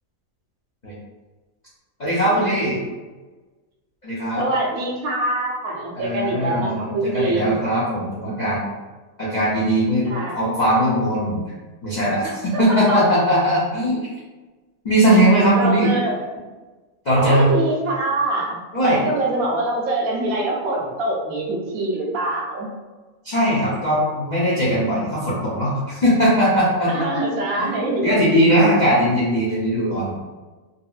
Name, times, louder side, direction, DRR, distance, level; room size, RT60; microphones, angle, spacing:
voice 1, 2.0-2.8 4.0-4.4 5.9-8.6 9.2-11.4 11.8-14.0 14.8-15.9 17.0-17.5 18.7-19.0 23.2-26.9 27.6-27.7 28.0-30.2, equal, 55° left, -9 dB, 0.4 m, -19 dB
voice 2, 4.4-7.6 10.0-10.4 12.2-13.0 15.5-16.2 17.1-22.7 26.9-28.2, right 2 dB, 70° right, -2 dB, 1.0 m, -24 dB
2.7 x 2.7 x 2.3 m, 1.2 s
omnidirectional pair, 1.7 m